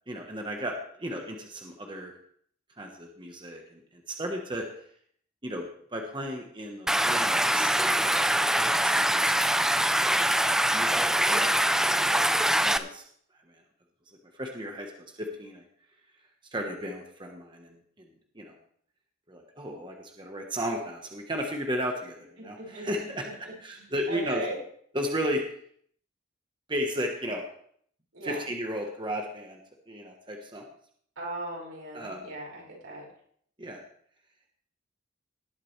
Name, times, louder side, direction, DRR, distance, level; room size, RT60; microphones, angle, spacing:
voice 1, 0.1-0.7 1.0-2.1 2.8-4.7 5.4-5.6 5.9-7.7 8.0-9.7 10.1-10.3 10.7-11.5 12.6-13.0 13.5-13.6 14.3-14.9 15.2-15.6 16.5-18.1 18.3-18.6 19.3-23.3 23.6-24.4 24.9-25.4 26.7-27.5 28.2-29.6 29.9-30.7 31.9-32.3 33.6-33.8, equal, 25° right, 2 dB, 1.2 m, -34 dB
Stream, 6.9-12.8, right 1 dB, 5° right, 0.3 m, -24 dB
voice 2, 22.4-22.9 23.2-24.6 28.1-28.4 31.2-33.1, right 2 dB, 90° right, -3 dB, 5.4 m, -39 dB
18.5 x 8.4 x 3.3 m, 0.62 s
head